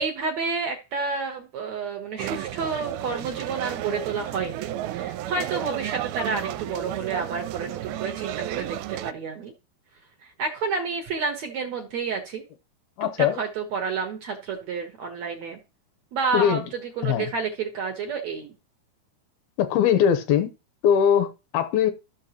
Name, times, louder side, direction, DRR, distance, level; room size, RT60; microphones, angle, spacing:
voice 1, 0.0-9.5 10.4-12.4 13.0-15.6 16.1-18.5, right 4 dB, 60° right, 2.0 m, -30 dB
sound 1, 2.2-9.1, right 13 dB, 85° right, 2.5 m, -32 dB
voice 2, 13.0-13.4 16.3-16.6 17.0-17.3 19.6-20.5 20.8-21.9, left 9 dB, 75° left, 2.7 m, -21 dB
14.0 x 6.4 x 3.0 m
omnidirectional pair, 4.5 m